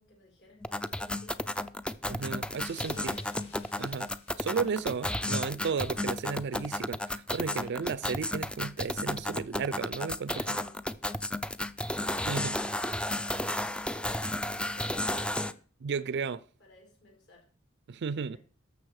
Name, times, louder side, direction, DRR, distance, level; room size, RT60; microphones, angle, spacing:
voice 1, 0.0-1.7 2.8-3.4 4.7-5.0 7.4-7.8 10.6-10.7 12.7-15.6 15.9-16.1 16.6-17.5 18.3-18.4, left 1 dB, 55° left, 5.4 m, -54 dB
sound 1, 0.6-15.5, left 1 dB, 5° left, 0.4 m, -33 dB
voice 2, 2.1-3.2 3.8-4.1 4.4-10.6 12.3-12.6 15.8-16.4 17.9-18.4, right 5 dB, 55° right, 0.4 m, -34 dB
sound 2, 2.4-5.4, left 3 dB, 30° left, 2.7 m, -55 dB
12.0 x 7.1 x 4.8 m
head